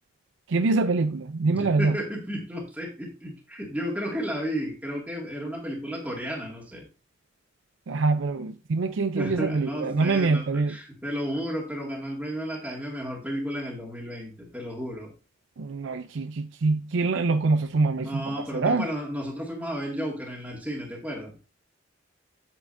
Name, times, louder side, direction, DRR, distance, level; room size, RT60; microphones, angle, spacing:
voice 1, 0.5-2.0 7.9-10.7 15.6-18.2 18.5-18.8, right 3 dB, 70° right, 0.5 m, -24 dB
voice 2, 1.4-6.8 9.1-15.1 18.0-21.4, equal, 10° right, 2.0 m, -33 dB
8.7 x 8.6 x 2.6 m
head